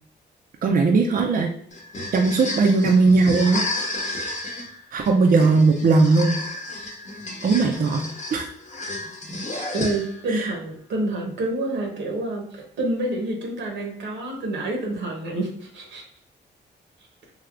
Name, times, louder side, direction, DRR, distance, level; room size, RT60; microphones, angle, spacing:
voice 1, 0.6-1.5 2.1-3.6 4.9-6.4 7.4-8.0 8.3-8.5 10.3-10.5, right 3 dB, 50° right, 2 dB, 0.5 m, -18 dB
sound 1, 1.7-10.3, left 2 dB, 40° left, 0.8 m, -32 dB
voice 2, 9.7-16.0, right 2 dB, 85° right, 0 dB, 0.9 m, -28 dB
3.3 x 2.8 x 2.4 m, 0.64 s
cardioid pair, 70°, 19 cm